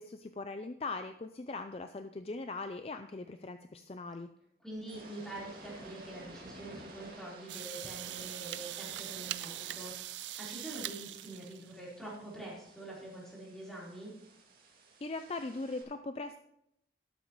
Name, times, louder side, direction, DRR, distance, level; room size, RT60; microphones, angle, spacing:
voice 1, 0.0-4.3 15.0-16.4, left 3 dB, 35° left, 8 dB, 0.4 m, -40 dB
voice 2, 4.6-14.1, right 1 dB, 5° left, -6 dB, 4.0 m, -45 dB
sound 1, 4.7-15.8, right 2 dB, 50° right, 2.4 m, -54 dB
sound 2, 7.5-11.8, right 14 dB, 85° right, 0.5 m, -42 dB
12.5 x 12.0 x 3.1 m, 0.78 s
head